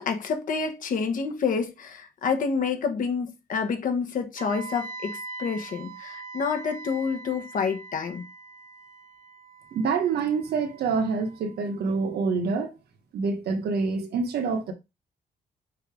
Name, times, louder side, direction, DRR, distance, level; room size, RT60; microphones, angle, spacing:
voice 1, 0.0-8.2, left 5 dB, 55° left, 1.2 m, -28 dB
Wind instrument woodwind instrument, 4.4-12.3, right 3 dB, 65° right, 1.9 m, -43 dB
voice 2, 9.7-12.7 13.1-14.7, right 5 dB, 85° right, 1.3 m, -26 dB
6.6 x 2.9 x 4.9 m
wide cardioid pair, 180°, 16 cm